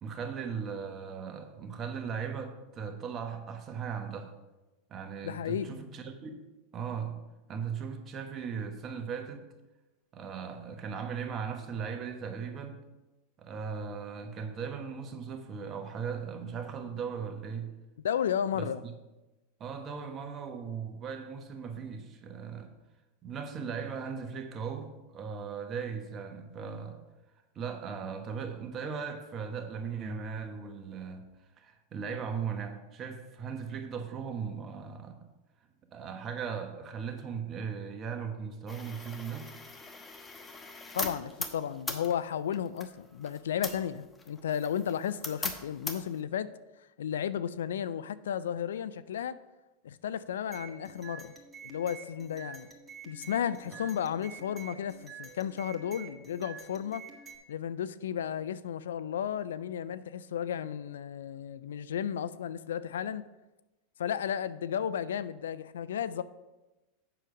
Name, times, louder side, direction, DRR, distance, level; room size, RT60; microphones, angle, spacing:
voice 1, 0.0-4.3 4.9-6.5 6.7-7.2 7.5-9.5 10.1-12.8 13.4-17.7 18.5-18.7 19.6-22.7 23.2-27.0 27.5-31.3 31.6-35.3 35.9-39.5 53.7-53.8, right 6 dB, 35° right, 1.2 m, -38 dB
voice 2, 5.2-5.8 18.0-18.8 40.9-46.5 47.0-49.4 49.8-51.3 51.6-52.7 53.1-57.0 57.5-63.2 64.0-66.2, left 9 dB, 80° left, 0.3 m, -33 dB
sound 1, 38.7-46.2, left 3 dB, 15° left, 1.0 m, -41 dB
sound 2, 50.5-57.4, right 6 dB, 15° right, 1.6 m, -48 dB
7.7 x 6.5 x 4.8 m
hypercardioid pair, 95°, 0 cm